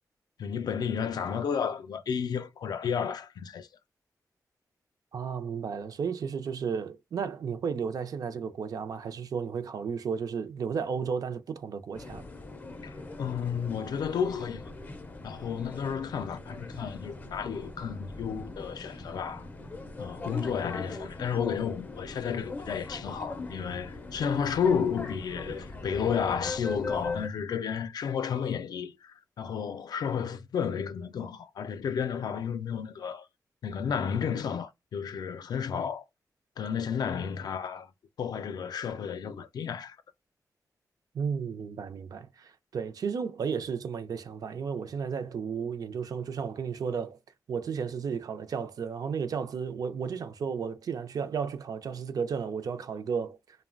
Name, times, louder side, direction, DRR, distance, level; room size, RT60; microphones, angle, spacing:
voice 1, 0.4-3.7 12.8-14.6 15.2-19.5 20.0-33.3 33.6-36.0 36.6-37.9 38.2-40.0, left 7 dB, 85° left, 0.4 m, -32 dB
voice 2, 5.1-12.2 41.1-47.2 47.5-53.4, right 6 dB, 65° right, 0.4 m, -33 dB
sound 1, 11.9-27.3, left 3 dB, 25° left, 0.4 m, -40 dB
3.1 x 2.1 x 2.4 m
wide cardioid pair, 160°, 7 cm